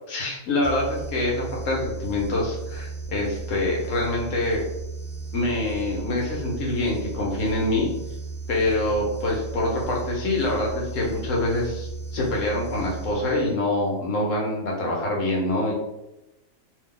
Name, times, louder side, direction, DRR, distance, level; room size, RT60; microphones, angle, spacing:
voice 1, 0.1-4.6 5.3-7.9 8.5-15.7, left 2 dB, 70° left, -2 dB, 1.2 m, -25 dB
sound 1, 0.6-13.8, right 4 dB, 85° left, 1.1 m, -35 dB
2.8 x 2.2 x 3.7 m, 0.93 s
omnidirectional pair, 1.4 m